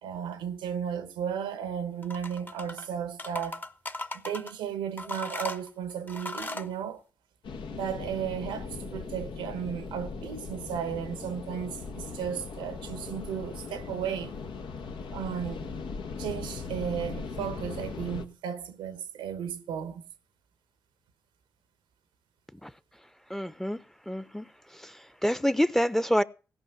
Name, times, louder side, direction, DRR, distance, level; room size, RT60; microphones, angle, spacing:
voice 1, 0.0-3.6 4.1-7.0 7.7-14.3 15.1-15.7 16.2-20.0, right 8 dB, 90° right, 1.1 m, -34 dB
sound 1, 2.0-2.9 3.2-4.5 5.0-6.7, left 1 dB, 25° left, 1.1 m, -37 dB
sound 2, 7.4-18.2, left 4 dB, 75° left, 1.3 m, -39 dB
voice 2, 23.3-23.8 24.1-24.5 24.7-26.2, equal, 5° left, 0.8 m, -27 dB
16.5 x 5.5 x 8.0 m
supercardioid pair, 40°, 8 cm